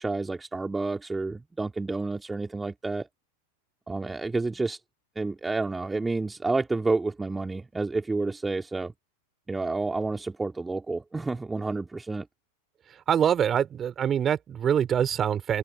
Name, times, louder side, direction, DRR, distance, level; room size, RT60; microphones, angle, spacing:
voice 1, 0.0-3.1 3.9-4.8 5.1-8.9 9.5-12.3, right 3 dB, 10° right, 2.8 m, -29 dB
voice 2, 12.9-15.6, right 9 dB, 25° right, 4.5 m, -25 dB
figure-of-eight pair, 90°, 0 cm